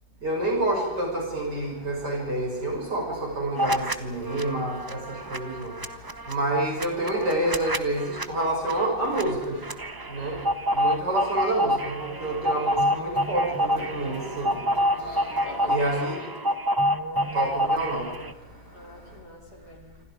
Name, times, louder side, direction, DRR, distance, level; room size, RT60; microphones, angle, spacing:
voice 1, 0.2-3.0 3.3-4.7 5.3-5.7 6.3-8.0 8.3-9.5 10.1-10.4 10.8-11.7 12.0-14.5 15.7-16.1 17.3-18.1, right 1 dB, 65° right, 0 dB, 7.7 m, -27 dB
sound 1, 3.6-3.9 4.3-18.3, equal, 25° right, 0.5 m, -27 dB
sound 2, 11.1-16.4, left 2 dB, 35° left, 7.7 m, -45 dB
voice 2, 15.3-16.5 18.7-20.0, left 1 dB, 60° left, 2 dB, 4.4 m, -42 dB
27.5 x 25.0 x 5.1 m, 1.0 s
omnidirectional pair, 2.0 m